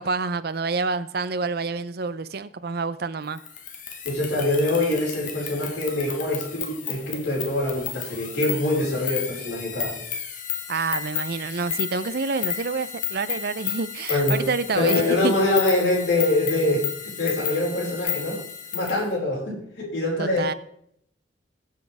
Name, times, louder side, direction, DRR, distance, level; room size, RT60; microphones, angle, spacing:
voice 1, 0.0-3.4 10.7-15.4 20.2-20.5, right 4 dB, 55° right, 14 dB, 0.6 m, -28 dB
sound 1, 3.4-19.0, left 8 dB, 45° left, 1.4 m, -32 dB
voice 2, 4.0-9.9 14.1-14.4 14.7-16.9 17.2-18.4 18.7-20.4, left 2 dB, 75° left, -3 dB, 5.2 m, -24 dB
20.5 x 7.6 x 3.5 m, 0.71 s
head